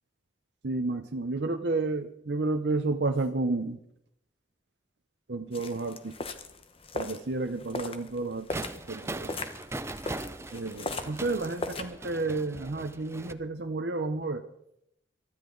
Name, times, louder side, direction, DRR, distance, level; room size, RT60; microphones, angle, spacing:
voice 1, 0.6-3.8 5.3-6.1 6.9-9.3 10.5-14.4, right 3 dB, 60° right, 5 dB, 0.8 m, -31 dB
sound 1, 5.5-11.8, left 2 dB, 30° left, 1.0 m, -39 dB
sound 2, 8.5-13.3, right 2 dB, 15° right, 0.5 m, -40 dB
23.5 x 13.0 x 3.9 m, 0.78 s
head